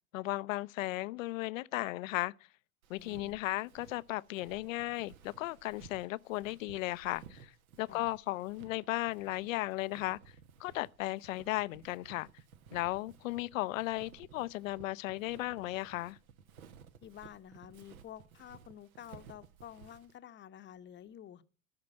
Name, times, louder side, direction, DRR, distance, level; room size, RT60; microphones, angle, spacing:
voice 1, 0.1-2.3 2.9-7.5 7.8-10.2 10.6-12.3 12.7-16.2, left 18 dB, 65° left, 0.6 m, -36 dB
Walk footsteps, 2.8-20.2, right 7 dB, 75° right, 1.5 m, -57 dB
voice 2, 2.9-3.4 7.9-8.0 17.0-21.4, left 10 dB, 25° left, 0.9 m, -50 dB
14.5 x 5.9 x 7.4 m
hypercardioid pair, 95°, 43 cm